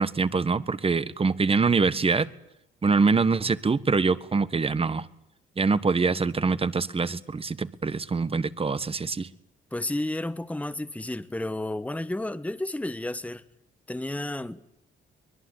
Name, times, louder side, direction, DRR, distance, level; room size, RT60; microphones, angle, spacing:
voice 1, 0.0-2.3 2.8-5.1 5.6-9.3, right 4 dB, 30° right, 1.5 m, -24 dB
voice 2, 9.7-13.4 13.9-14.8, left 1 dB, 5° left, 1.3 m, -32 dB
24.0 x 21.0 x 9.9 m
cardioid pair, 90°, 20 cm